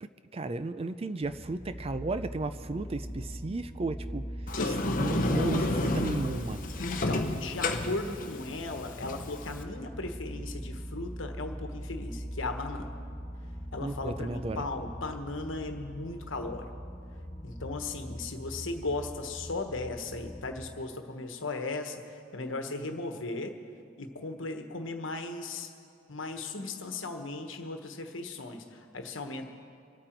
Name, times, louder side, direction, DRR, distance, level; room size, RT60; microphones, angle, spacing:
voice 1, 0.0-4.3 4.6-6.6 13.8-14.6, right 2 dB, 30° right, 12 dB, 0.4 m, -34 dB
sound 1, 1.2-20.7, equal, 25° left, 2.4 m, -41 dB
Sliding door, 4.5-9.6, left 2 dB, 45° left, 0.9 m, -31 dB
voice 2, 6.8-12.9 13.7-16.7 17.4-23.5 24.0-25.7 26.1-29.5, left 2 dB, 75° left, 5 dB, 1.3 m, -37 dB
25.5 x 8.9 x 4.5 m, 2.5 s
head